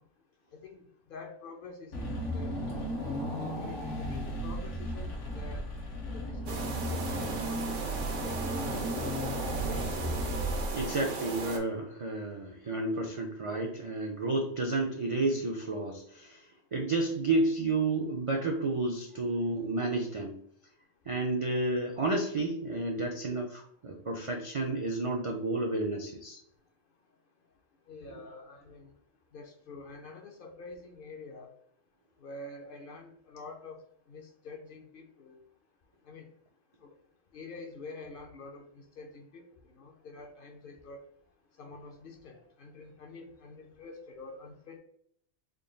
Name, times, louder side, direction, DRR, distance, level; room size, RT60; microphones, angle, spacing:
voice 1, 0.5-0.8 1.1-2.6 3.6-5.7 6.1-7.4 8.0-9.2 9.5-10.0 27.9-28.9 29.3-31.5 32.2-33.8 34.1-35.4 36.1-36.3 36.8-36.9 37.3-41.0 41.6-44.8, left 3 dB, 60° left, 4 dB, 0.6 m, -47 dB
Car / Engine, 1.9-11.1, equal, 90° left, 1.3 m, -35 dB
sound 1, 6.5-11.6, right 4 dB, 85° right, 1.1 m, -37 dB
voice 2, 10.7-20.4 21.1-26.4, right 2 dB, 55° right, 1 dB, 0.3 m, -31 dB
3.7 x 2.2 x 3.8 m, 0.69 s
omnidirectional pair, 1.2 m